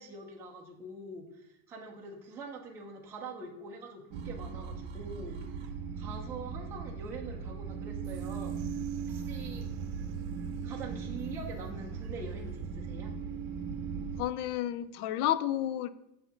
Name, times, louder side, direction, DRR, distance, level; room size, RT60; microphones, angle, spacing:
voice 1, 0.0-5.5 5.9-8.6 8.9-9.7 10.6-13.1, right 3 dB, 5° right, 0.3 m, -44 dB
sound 1, 4.1-14.2, right 6 dB, 40° right, 0.7 m, -38 dB
voice 2, 14.2-15.9, left 12 dB, 70° left, 0.6 m, -31 dB
8.0 x 2.8 x 5.6 m
supercardioid pair, 140°, 46 cm